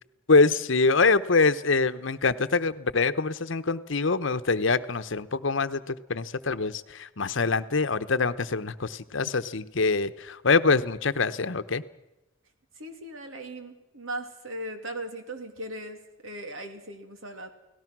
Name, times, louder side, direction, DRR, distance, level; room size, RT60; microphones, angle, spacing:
voice 1, 0.3-11.8, left 4 dB, 65° left, 12 dB, 0.9 m, -24 dB
voice 2, 12.8-17.5, right 1 dB, 80° right, 6 dB, 2.9 m, -38 dB
30.0 x 18.0 x 6.1 m, 0.95 s
head